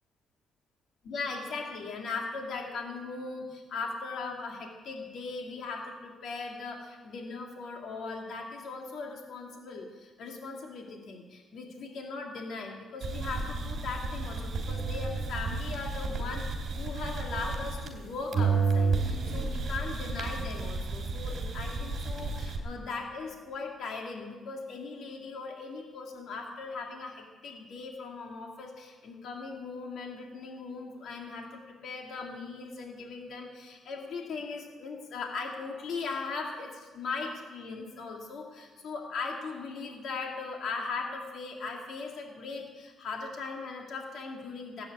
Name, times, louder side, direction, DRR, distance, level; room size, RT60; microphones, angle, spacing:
voice 1, 1.1-44.8, left 4 dB, 55° left, 1 dB, 2.3 m, -39 dB
sound 1, 13.0-18.1 18.3-22.6, right 4 dB, 40° right, 2.9 m, -31 dB
18.0 x 9.2 x 8.4 m, 1.4 s
cardioid pair, 165°, 0 cm